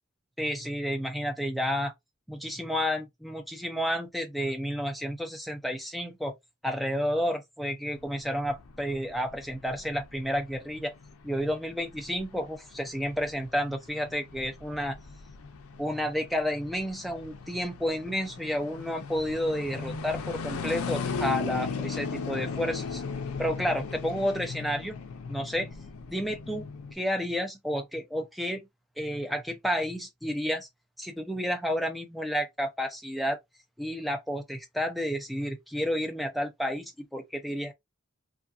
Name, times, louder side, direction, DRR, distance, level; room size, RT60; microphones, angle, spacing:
voice 1, 0.4-1.9 2.3-6.3 6.6-10.9 11.2-15.0 15.8-23.0 23.4-25.0 25.3-25.7 26.1-26.7 26.9-28.7 29.0-30.7 31.0-33.4 33.8-37.7, equal, ahead, 0.5 m, -31 dB
sound 1, 8.0-26.9, left 5 dB, 80° left, 0.4 m, -38 dB
2.6 x 2.5 x 2.3 m
head